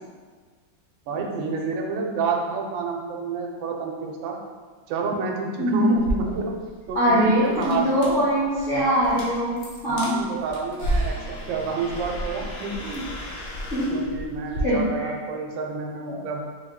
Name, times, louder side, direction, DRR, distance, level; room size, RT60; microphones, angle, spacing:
voice 1, 1.1-4.4 4.9-6.6 6.9-8.2 9.9-13.1 13.9-16.4, right 4 dB, 85° right, 1 dB, 1.3 m, -29 dB
voice 2, 5.6-6.0 6.9-10.2 13.7-14.0 14.6-15.1 16.1-16.2, equal, 55° left, -10 dB, 0.6 m, -22 dB
sound 1, 5.9-14.6, right 1 dB, 75° left, 1.4 m, -33 dB
4.2 x 2.2 x 3.6 m, 1.5 s
omnidirectional pair, 2.1 m